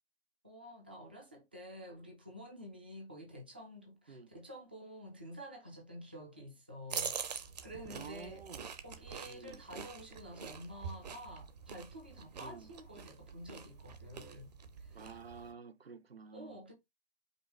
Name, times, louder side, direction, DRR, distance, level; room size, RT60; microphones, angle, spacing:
voice 1, 0.4-8.4 8.8-14.5 14.8-15.0 16.3-16.7, equal, 10° right, 0.3 m, -50 dB
sound 1, 6.9-15.5, right 6 dB, 45° right, 0.7 m, -45 dB
voice 2, 7.9-8.7 9.3-9.6 12.4-12.7 14.9-16.6, right 5 dB, 85° right, 0.6 m, -50 dB
5.3 x 2.1 x 4.0 m
figure-of-eight pair, 135°, 30 cm